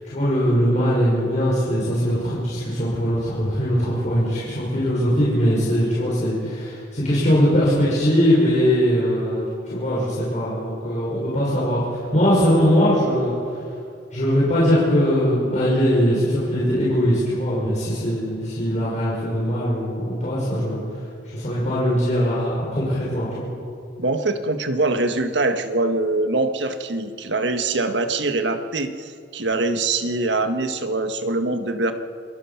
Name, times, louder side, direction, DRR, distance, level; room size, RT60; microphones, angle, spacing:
voice 1, 0.0-13.4 14.1-20.8 21.3-23.5, equal, 45° left, -8 dB, 6.1 m, -21 dB
voice 2, 24.0-31.9, right 2 dB, 75° right, 7 dB, 1.5 m, -23 dB
28.0 x 21.0 x 5.9 m, 2.4 s
head